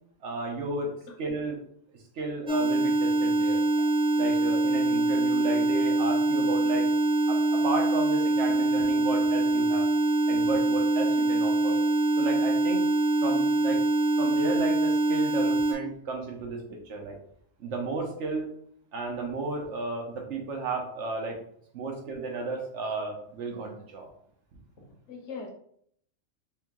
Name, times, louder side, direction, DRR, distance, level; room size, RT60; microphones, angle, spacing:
voice 1, 0.2-1.6 2.1-3.6 4.2-6.9 7.3-9.8 10.3-11.8 12.2-12.9 13.2-13.8 14.2-17.2 17.6-18.5 18.9-21.4 21.7-24.1, right 3 dB, 65° right, 1 dB, 1.2 m, -33 dB
sound 1, 2.5-15.7, right 1 dB, 5° right, 0.5 m, -24 dB
voice 2, 25.1-25.5, left 5 dB, 70° left, 1 dB, 1.1 m, -41 dB
3.6 x 2.9 x 3.7 m, 0.65 s
omnidirectional pair, 1.4 m